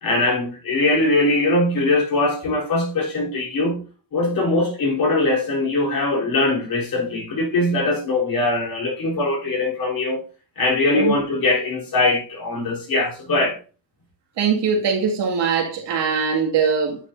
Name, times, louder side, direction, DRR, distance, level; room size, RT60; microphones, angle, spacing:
voice 1, 0.0-3.8 4.1-10.2 10.6-13.6, left 2 dB, 55° left, 4.0 m, -21 dB
voice 2, 14.4-17.0, right 6 dB, 75° right, 2.3 m, -21 dB
9.8 x 6.5 x 2.7 m
cardioid pair, 145°, 43 cm